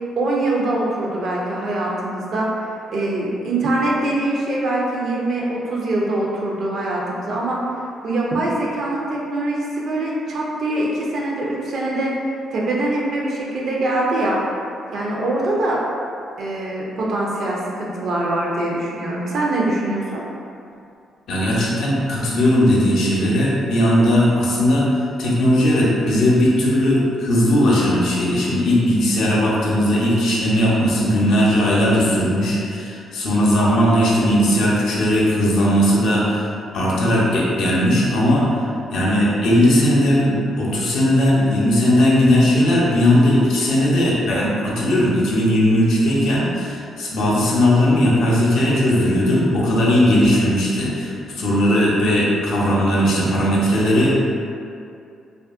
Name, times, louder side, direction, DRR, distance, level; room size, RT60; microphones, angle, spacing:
voice 1, 0.2-2.5 2.9-7.6 8.0-12.1 12.5-14.4 14.9-15.8 16.4-20.2, right 2 dB, 65° right, -4 dB, 0.5 m, -23 dB
voice 2, 21.3-24.9 25.2-36.5 36.7-38.6 38.9-54.2, equal, 75° left, -5 dB, 0.6 m, -17 dB
2.6 x 2.4 x 2.4 m, 2.5 s
cardioid pair, 90°, 0 cm